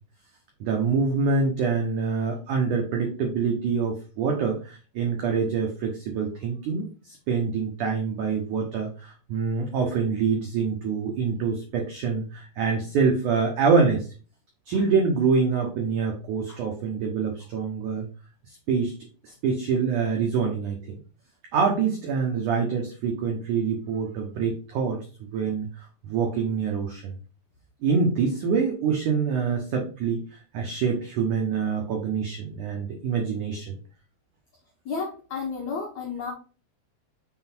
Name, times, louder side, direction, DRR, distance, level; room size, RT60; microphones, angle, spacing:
voice 1, 0.6-14.1 14.7-18.1 18.5-18.9 19.2-21.0 21.5-27.1 27.8-33.8, right 5 dB, 80° right, 1 dB, 1.7 m, -26 dB
voice 2, 34.8-36.3, left 5 dB, 70° left, -1 dB, 1.7 m, -32 dB
6.3 x 3.9 x 4.4 m, 0.37 s
omnidirectional pair, 4.9 m